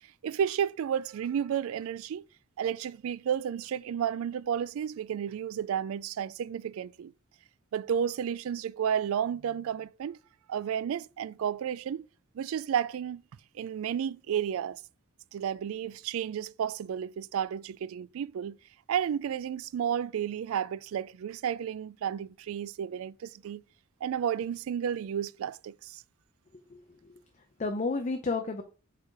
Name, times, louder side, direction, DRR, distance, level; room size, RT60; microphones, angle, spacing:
voice 1, 0.2-2.2 2.6-7.1 7.7-10.2 10.5-12.1 12.3-13.2 13.5-14.8 15.3-18.6 18.9-23.6 24.0-26.0, right 8 dB, 65° right, 0.3 m, -32 dB
voice 2, 26.7-27.1 27.6-28.6, left 3 dB, 35° left, 0.6 m, -31 dB
4.8 x 4.6 x 4.7 m
head